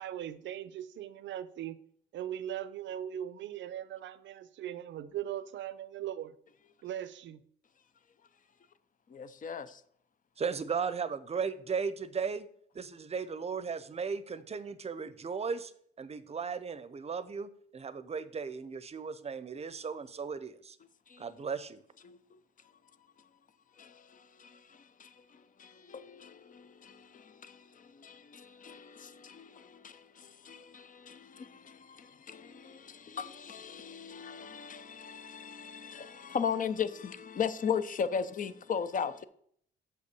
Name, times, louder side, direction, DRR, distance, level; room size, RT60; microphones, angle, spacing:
voice 1, 0.0-1.8 2.1-6.3 6.8-7.4, right 11 dB, 70° right, 0.6 m, -39 dB
voice 2, 9.1-9.8 21.1-21.3 22.0-22.2 23.8-39.2, left 7 dB, 40° left, 0.6 m, -38 dB
voice 3, 10.4-12.5 12.7-15.7 16.0-20.8 21.2-21.8, right 5 dB, 30° right, 0.7 m, -36 dB
6.4 x 5.4 x 6.8 m
cardioid pair, 90°, 20 cm